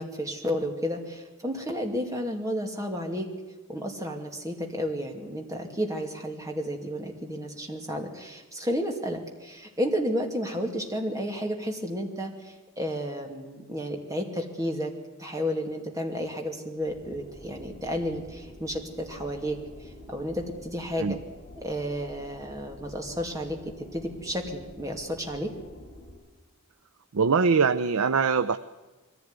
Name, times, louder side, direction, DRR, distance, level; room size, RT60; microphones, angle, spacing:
voice 1, 0.0-3.3 3.7-14.9 15.2-21.1 21.6-25.5, equal, 15° right, 2 dB, 2.4 m, -32 dB
sound 1, 16.8-26.1, left 1 dB, 35° left, 6.9 m, -48 dB
voice 2, 27.1-28.6, right 5 dB, 85° right, 12 dB, 0.6 m, -22 dB
22.0 x 15.0 x 9.6 m, 1.2 s
head